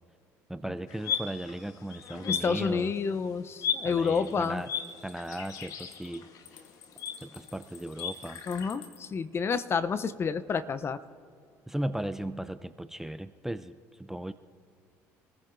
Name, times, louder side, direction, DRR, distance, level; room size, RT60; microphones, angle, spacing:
voice 1, 0.5-2.9 3.8-4.7 5.0-6.3 7.2-8.4 11.7-14.3, right 1 dB, 5° right, 11 dB, 0.4 m, -36 dB
sound 1, 0.9-3.1 3.6-8.7, left 7 dB, 60° left, 1.2 m, -36 dB
voice 2, 2.3-4.6 8.5-11.0, left 5 dB, 35° left, 14 dB, 0.6 m, -29 dB
sound 2, 3.5-9.1, left 9 dB, 90° left, 1.2 m, -53 dB
24.5 x 15.0 x 2.6 m, 2.5 s
supercardioid pair, 85°, 7 cm